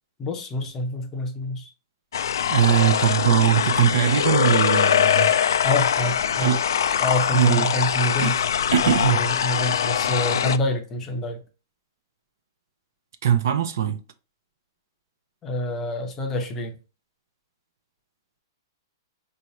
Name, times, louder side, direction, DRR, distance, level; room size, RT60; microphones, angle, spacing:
voice 1, 0.2-1.7 5.6-6.5 7.0-8.4 8.8-11.4 15.4-16.8, left 1 dB, 15° left, 0.6 m, -27 dB
sound 1, 2.1-10.6, left 8 dB, 90° left, 0.3 m, -22 dB
voice 2, 2.5-5.3 6.4-6.6 7.3-7.7 8.2-8.3 8.7-9.2 13.2-14.0, right 10 dB, 60° right, 0.6 m, -21 dB
4.7 x 2.8 x 3.1 m
hypercardioid pair, 170°, 2 cm